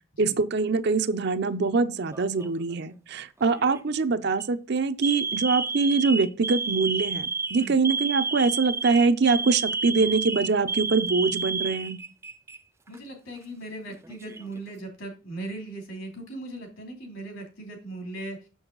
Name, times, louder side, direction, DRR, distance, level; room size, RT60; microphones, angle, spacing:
voice 1, 0.2-12.0, right 4 dB, 55° right, 0.6 m, -24 dB
Alarm, 2.1-2.6 3.5-3.8 4.3-4.4 5.0-12.6 12.9-13.0 13.9-14.6, right 4 dB, 15° right, 0.4 m, -30 dB
voice 2, 12.9-18.4, right 2 dB, 70° left, 2.9 m, -38 dB
6.7 x 6.3 x 3.9 m
head